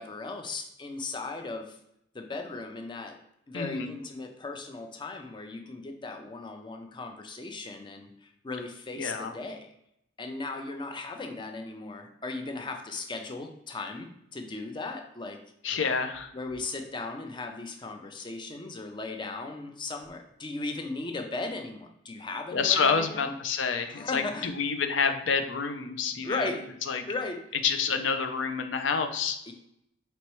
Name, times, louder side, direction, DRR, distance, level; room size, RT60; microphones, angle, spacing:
voice 1, 0.0-1.8 2.1-3.2 3.5-9.7 10.2-15.4 16.3-23.3 23.9-24.5 26.2-26.7 27.1-27.5 29.5-29.6, left 3 dB, 25° left, 4 dB, 0.5 m, -37 dB
voice 2, 3.5-3.9 9.0-9.4 15.6-16.3 22.5-26.5 26.9-27.0 27.6-29.4, left 5 dB, 90° left, 7 dB, 0.5 m, -28 dB
4.4 x 3.1 x 3.1 m, 0.76 s
head